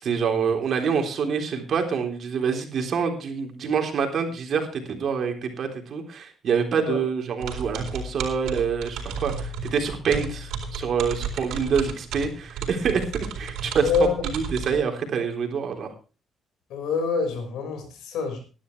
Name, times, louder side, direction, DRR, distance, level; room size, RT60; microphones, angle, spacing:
voice 1, 0.0-13.9 14.2-15.9, right 6 dB, 60° right, 4 dB, 3.6 m, -26 dB
sound 1, 7.4-14.8, right 5 dB, 85° right, 4.1 m, -33 dB
voice 2, 13.8-14.1 16.7-18.4, left 5 dB, 85° left, 5 dB, 5.2 m, -25 dB
19.0 x 11.5 x 3.3 m, 0.34 s
cardioid pair, 90°, 0 cm